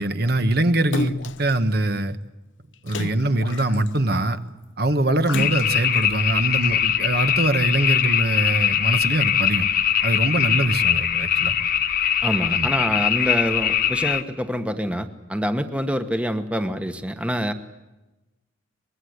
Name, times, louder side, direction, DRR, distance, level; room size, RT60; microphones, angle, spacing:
voice 1, 0.0-2.2 2.8-4.4 4.8-9.7 10.0-11.5 12.5-12.7, right 1 dB, 55° right, 10 dB, 1.3 m, -23 dB
Splash splatter, 0.9-1.5 2.9-4.1 5.3-6.0 6.6-6.7, left 3 dB, 80° left, 0.9 m, -31 dB
sound 1, 5.4-14.2, left 9 dB, 50° left, 1.3 m, -22 dB
voice 2, 12.2-17.5, equal, 5° right, 8 dB, 1.2 m, -26 dB
24.5 x 21.5 x 8.0 m, 1.0 s
head